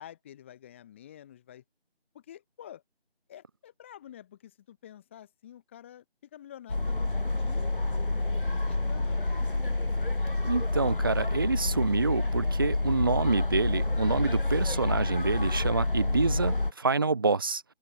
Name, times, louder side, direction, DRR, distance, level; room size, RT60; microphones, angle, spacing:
voice 1, 0.0-1.6 2.1-2.8 3.3-6.0 6.3-9.7, left 11 dB, 10° left, 7.4 m, -49 dB
sound 1, 6.7-16.7, left 2 dB, 55° left, 2.9 m, -28 dB
voice 2, 10.4-17.6, right 4 dB, 20° right, 2.3 m, -27 dB
figure-of-eight pair, 165°, 32 cm